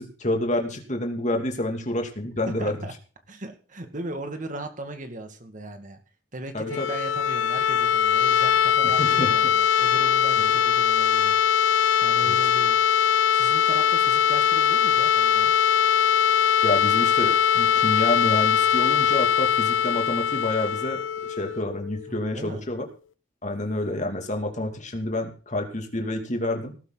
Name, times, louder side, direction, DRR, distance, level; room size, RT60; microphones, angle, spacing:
voice 1, 0.0-2.8 6.5-6.9 8.8-9.3 10.4-10.5 12.2-12.4 16.6-21.0 21.4-22.8 23.4-26.7, left 1 dB, 40° left, 4 dB, 2.6 m, -28 dB
voice 2, 2.5-2.9 3.3-6.0 6.3-11.7 12.0-12.8 13.3-15.5 22.1-22.7, right 1 dB, 45° right, 6 dB, 2.1 m, -37 dB
sound 1, 6.6-22.4, left 8 dB, 90° left, 0.5 m, -21 dB
18.5 x 11.5 x 4.0 m, 0.38 s
head